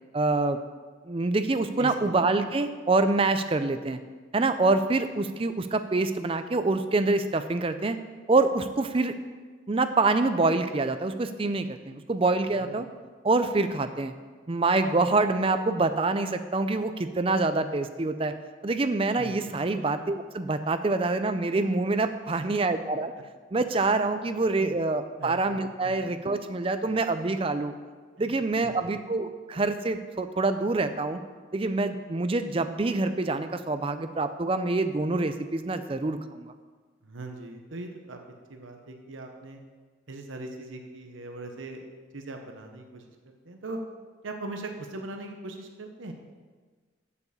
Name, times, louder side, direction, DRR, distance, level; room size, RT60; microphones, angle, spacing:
voice 1, 0.1-0.6 1.1-4.0 4.3-8.0 8.3-9.1 9.7-12.8 13.2-14.1 14.5-18.3 18.6-23.1 23.5-27.7 28.2-31.2 31.5-36.5, right 3 dB, 25° right, 9 dB, 0.4 m, -26 dB
voice 2, 1.8-2.1 12.5-12.9 19.1-19.6 24.6-24.8 25.2-26.0 28.2-28.3 28.6-29.0 37.0-38.2 38.5-39.6 40.1-43.8 44.2-46.1, right 2 dB, 75° right, 4 dB, 0.9 m, -40 dB
7.3 x 6.8 x 6.9 m, 1.5 s
head